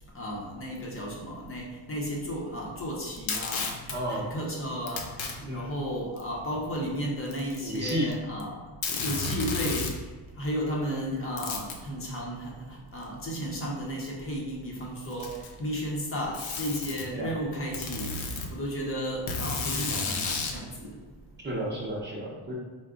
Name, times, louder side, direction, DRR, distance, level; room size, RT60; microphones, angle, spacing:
voice 1, 0.1-8.6 9.0-9.9 10.4-21.0, equal, 25° left, -2 dB, 0.8 m, -34 dB
Packing tape duct tape, 3.1-4.0 4.9-5.3 6.2-6.3 7.3-8.1 8.4-8.5 8.8-10.0 11.4-11.8 13.0-13.1 14.1-14.2 15.0-15.6 16.3-17.1 17.7-18.5 19.3-20.6, left 4 dB, 75° left, 0.8 m, -32 dB
voice 2, 3.9-4.3 5.4-5.7 7.6-8.1 17.1-17.3 19.8-20.0 21.4-22.5, equal, 20° right, -3 dB, 0.7 m, -32 dB
4.6 x 2.2 x 3.7 m, 1.4 s
cardioid pair, 155°, 47 cm